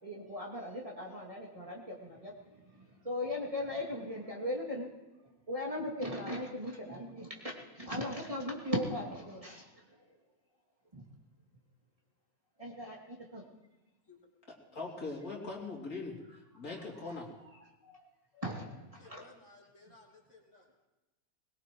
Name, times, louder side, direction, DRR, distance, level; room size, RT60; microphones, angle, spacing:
voice 1, 0.0-4.9 5.5-9.8 10.9-11.0 12.6-13.4 17.0-17.2 17.8-18.0 18.3-19.3, left 1 dB, 25° right, -3 dB, 2.7 m, -38 dB
voice 2, 14.7-16.2 16.5-17.3, left 3 dB, 85° left, -2 dB, 3.3 m, -40 dB
voice 3, 19.0-20.7, left 3 dB, 55° left, -3 dB, 3.6 m, -59 dB
22.0 x 21.0 x 3.1 m, 1.1 s
omnidirectional pair, 1.5 m